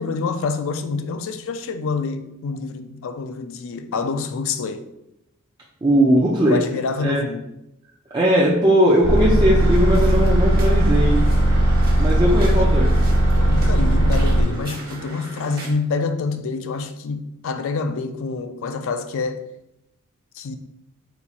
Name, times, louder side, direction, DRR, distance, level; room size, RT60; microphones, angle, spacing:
voice 1, 0.0-4.9 5.9-6.2 6.5-7.4 12.6-12.7 13.4-19.4 20.3-20.6, left 4 dB, 65° left, 0.4 m, -27 dB
voice 2, 5.8-6.6 7.0-7.2 8.1-11.2 12.0-12.9, equal, 20° right, 0.5 m, -18 dB
sound 1, 9.0-14.4, right 1 dB, 80° right, 1.2 m, -17 dB
sound 2, 9.6-15.7, right 2 dB, 45° right, 1.1 m, -37 dB
4.2 x 4.1 x 2.4 m
head